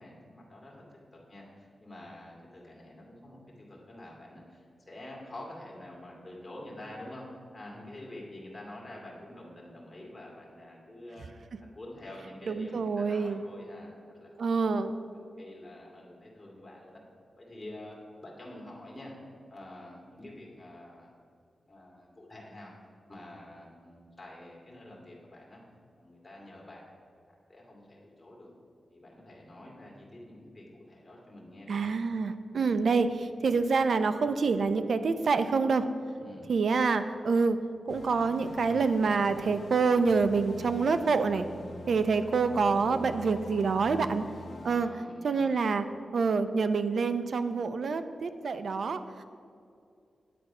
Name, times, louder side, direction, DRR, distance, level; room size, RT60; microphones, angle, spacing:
voice 1, 0.0-13.9 14.2-14.9 15.4-17.0 17.4-17.9 18.2-19.2 19.5-21.1 21.7-22.7 23.1-25.6 26.0-26.8 27.1-28.5 28.9-31.9 36.2-36.5 44.8-45.5, left 1 dB, 20° left, -3 dB, 2.3 m, -47 dB
voice 2, 12.5-13.4 14.4-14.9 31.7-35.9 36.5-37.6 37.9-41.5 41.9-44.2 44.6-44.9 45.2-45.9 46.1-49.2, right 4 dB, 65° right, 11 dB, 0.5 m, -27 dB
sound 1, 37.9-44.9, left 2 dB, 55° left, 0.9 m, -45 dB
9.3 x 8.1 x 5.4 m, 2.4 s
wide cardioid pair, 130°, 0 cm